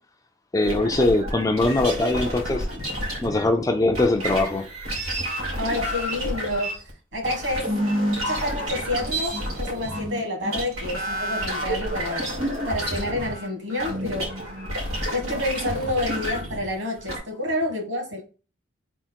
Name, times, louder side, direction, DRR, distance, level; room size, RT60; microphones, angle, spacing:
voice 1, 0.5-2.7 3.2-4.7, left 2 dB, 15° left, 0.3 m, -21 dB
sound 1, 0.7-3.5 3.9-17.2, equal, 90° right, 2.1 m, -29 dB
voice 2, 5.6-7.8 8.2-14.3 15.1-18.2, left 1 dB, 55° right, 1.4 m, -29 dB
3.6 x 2.9 x 4.4 m
head